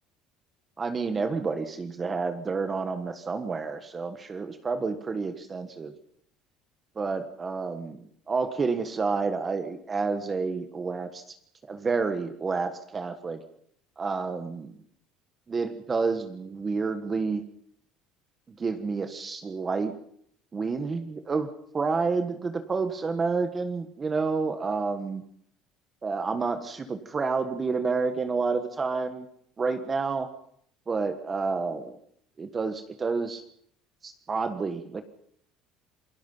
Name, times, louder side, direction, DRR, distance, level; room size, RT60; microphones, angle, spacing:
voice 1, 0.8-5.9 6.9-11.2 11.7-13.4 14.0-14.7 15.5-17.4 18.6-19.9 20.5-21.5 21.7-25.2 26.0-29.3 29.6-30.3 30.9-32.0 32.4-33.4 34.0-35.0, right 4 dB, 25° right, 9 dB, 1.5 m, -29 dB
27.5 x 18.0 x 5.6 m, 0.65 s
cardioid pair, 125°, 0 cm